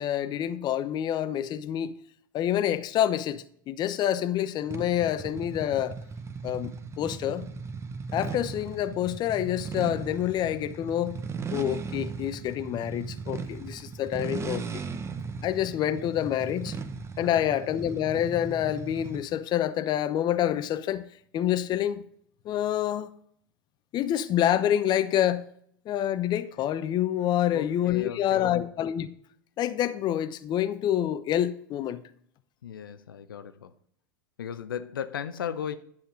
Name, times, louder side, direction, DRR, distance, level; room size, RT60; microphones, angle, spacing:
voice 1, 0.0-1.9 2.3-6.0 6.4-7.5 8.1-11.2 11.5-14.8 15.4-16.8 17.2-21.0 21.3-22.0 22.4-23.1 23.9-25.4 25.9-29.1 29.6-32.0, left 11 dB, 40° left, 0.7 m, -27 dB
sound 1, 4.7-19.4, right 5 dB, 25° right, 0.9 m, -37 dB
voice 2, 27.5-28.6 32.6-33.7 34.4-35.8, left 8 dB, 80° left, 0.6 m, -36 dB
10.5 x 7.3 x 3.7 m
hypercardioid pair, 85°, 11 cm